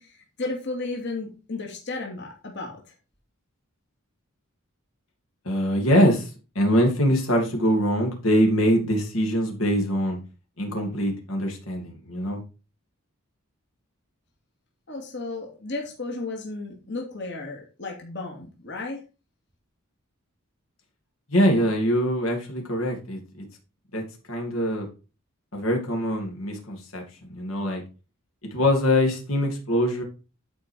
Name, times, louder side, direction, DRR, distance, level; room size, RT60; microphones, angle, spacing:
voice 1, 0.0-2.8 14.9-19.0, left 3 dB, 55° left, 0 dB, 2.8 m, -34 dB
voice 2, 5.4-6.3 6.5-10.2 10.6-12.4 21.3-23.5 23.9-24.0 24.3-24.9 25.5-27.8 28.5-30.0, equal, 75° left, 1 dB, 2.9 m, -23 dB
11.0 x 5.4 x 4.7 m, 0.32 s
head